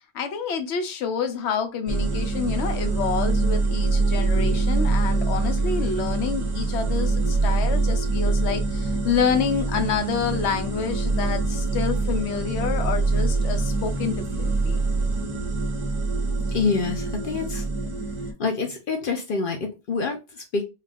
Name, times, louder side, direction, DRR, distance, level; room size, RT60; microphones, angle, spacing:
voice 1, 0.1-14.8, left 6 dB, 85° left, 7 dB, 0.9 m, -28 dB
sound 1, 1.9-18.3, right 3 dB, 40° right, 0.5 m, -24 dB
voice 2, 16.5-17.6 18.4-20.6, left 4 dB, 60° left, 3 dB, 0.7 m, -26 dB
2.4 x 2.3 x 3.3 m, 0.26 s
omnidirectional pair, 1.1 m